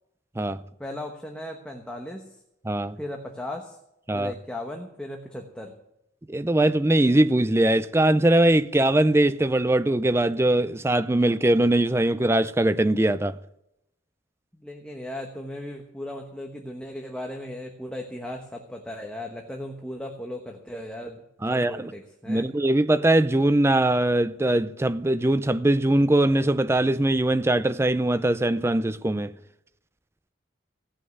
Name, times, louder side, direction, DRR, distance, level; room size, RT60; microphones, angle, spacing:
voice 1, 0.8-2.3 3.0-3.8 4.1-5.7 14.5-22.5, left 1 dB, 5° left, 1.1 m, -37 dB
voice 2, 2.6-3.0 4.1-4.3 6.3-13.4 21.4-21.9 22.3-29.3, right 1 dB, 15° right, 0.4 m, -21 dB
17.0 x 6.3 x 9.3 m
head